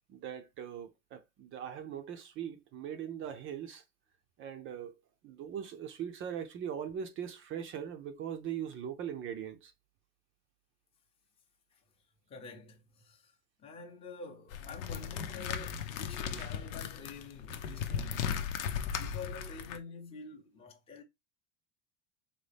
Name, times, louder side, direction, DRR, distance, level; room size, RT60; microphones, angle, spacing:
voice 1, 0.1-3.8 4.4-9.7 16.4-16.5, right 9 dB, 30° right, 0.6 m, -41 dB
voice 2, 12.3-18.4 19.0-21.0, left 4 dB, 15° left, 0.7 m, -48 dB
sound 1, 14.5-19.8, left 8 dB, 80° left, 0.8 m, -37 dB
4.1 x 3.0 x 3.4 m
supercardioid pair, 135°, 39 cm